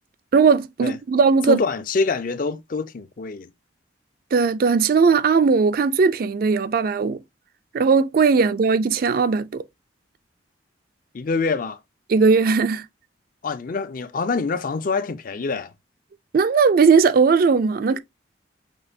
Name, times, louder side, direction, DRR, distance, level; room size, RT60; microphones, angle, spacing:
voice 1, 0.3-1.6 4.3-7.2 7.7-9.6 12.1-12.9 16.3-18.0, right 5 dB, 50° right, 0.3 m, -18 dB
voice 2, 1.5-3.5 11.1-11.8 13.4-15.7, left 4 dB, 45° left, 0.4 m, -25 dB
6.1 x 3.0 x 2.6 m
head